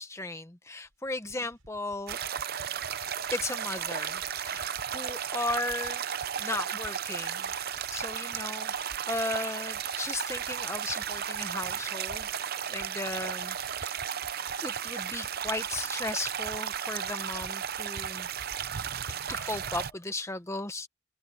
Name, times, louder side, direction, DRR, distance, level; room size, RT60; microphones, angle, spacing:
voice 1, 0.0-2.2 3.3-6.0 6.4-7.5 7.9-12.3 12.7-14.0 14.6-18.3 19.3-20.9, left 2 dB, 15° left, 0.9 m, -36 dB
sound 1, 0.8-20.0, equal, 80° right, 6.9 m, -53 dB
sound 2, 2.1-19.9, right 8 dB, 45° right, 0.6 m, -34 dB
open air
head